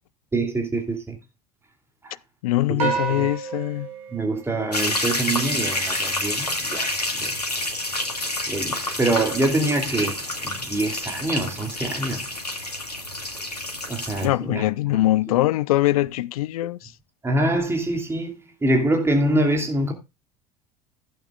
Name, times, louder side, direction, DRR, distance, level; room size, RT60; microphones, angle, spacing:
voice 1, 0.3-1.2 2.0-2.2 2.7-3.3 4.1-6.9 7.2-7.4 8.5-12.3 13.9-14.6 14.9-15.0 17.2-19.9, right 1 dB, 10° right, 2.7 m, -25 dB
voice 2, 2.4-3.9 14.2-16.9, left 16 dB, 65° left, 0.6 m, -22 dB
sound 1, 2.8-5.3, right 6 dB, 70° right, 5.0 m, -30 dB
sound 2, 4.7-14.3, left 1 dB, 90° left, 2.1 m, -28 dB
15.5 x 8.8 x 2.4 m
figure-of-eight pair, 70°, 20 cm